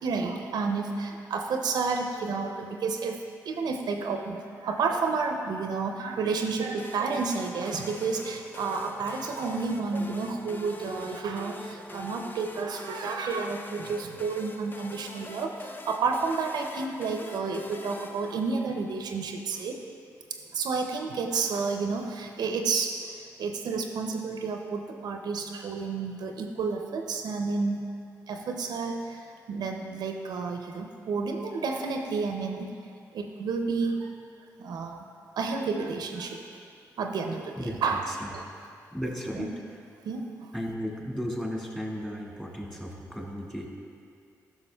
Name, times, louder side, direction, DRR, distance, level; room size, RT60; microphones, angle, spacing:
voice 1, 0.0-3.2 3.5-19.8 20.5-27.8 28.3-32.7 33.1-34.1 34.6-35.0 35.4-36.4 37.0-38.1 38.3-38.4 39.3-39.5 40.0-40.5, right 4 dB, 75° right, 4 dB, 0.5 m, -31 dB
sound 1, 6.8-19.0, left 2 dB, 30° left, 0.5 m, -44 dB
voice 2, 38.9-39.5 40.5-43.7, equal, 10° left, -2 dB, 1.8 m, -34 dB
11.5 x 5.7 x 2.3 m, 2.3 s
supercardioid pair, 50°, 7 cm